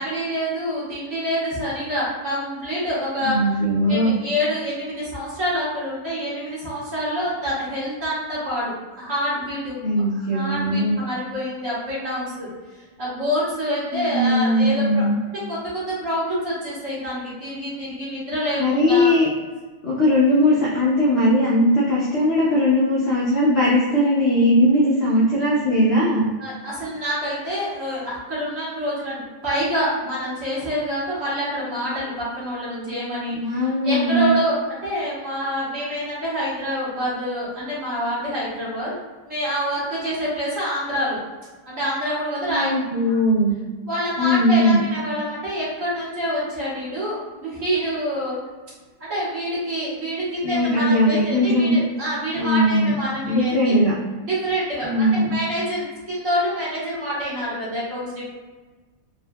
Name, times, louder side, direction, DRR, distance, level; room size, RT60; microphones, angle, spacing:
voice 1, 0.0-3.4 3.9-10.0 10.3-12.5 13.0-19.1 26.4-38.9 39.2-41.2 41.6-42.7 43.8-48.4 49.0-53.8 54.2-58.2, equal, 50° right, -9 dB, 1.5 m, -27 dB
voice 2, 3.2-4.1 9.8-11.0 13.9-15.2 18.6-19.3 19.8-26.3 33.3-34.3 42.5-43.5 44.2-44.9 50.4-51.8 52.3-52.9 53.2-53.9 54.8-55.4, equal, 70° left, -7 dB, 0.6 m, -19 dB
3.7 x 2.6 x 2.2 m, 1.3 s
omnidirectional pair, 1.9 m